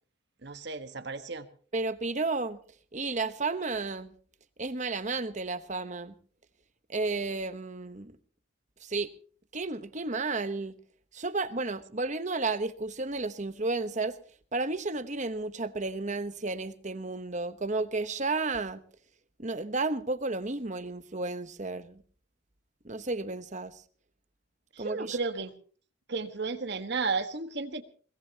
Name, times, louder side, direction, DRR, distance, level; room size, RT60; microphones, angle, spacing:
voice 1, 0.4-1.5 24.7-25.5 26.1-27.8, right 4 dB, 55° right, 1.4 m, -33 dB
voice 2, 1.7-2.6 2.9-4.1 4.6-6.2 6.9-8.1 8.8-9.1 9.5-10.8 11.1-14.2 14.5-18.8 19.4-22.0 22.8-23.8 24.8-25.2, right 3 dB, 35° right, 1.1 m, -32 dB
22.0 x 20.5 x 2.9 m
head